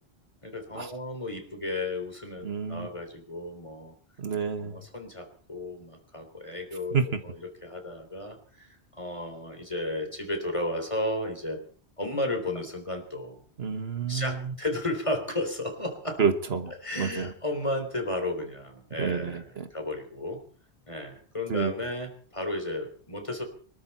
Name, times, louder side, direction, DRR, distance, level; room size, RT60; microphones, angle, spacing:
voice 1, 0.4-4.0 4.6-6.9 7.2-11.6 12.0-13.4 14.1-16.2 16.8-20.4 20.9-23.4, left 1 dB, 30° left, 5 dB, 3.6 m, -33 dB
voice 2, 2.4-2.9 4.2-4.9 6.9-7.2 13.6-14.5 16.2-16.7 17.0-17.3 19.0-19.7 21.5-21.7, right 6 dB, 65° right, 9 dB, 1.5 m, -29 dB
24.5 x 13.0 x 4.3 m, 0.44 s
omnidirectional pair, 1.1 m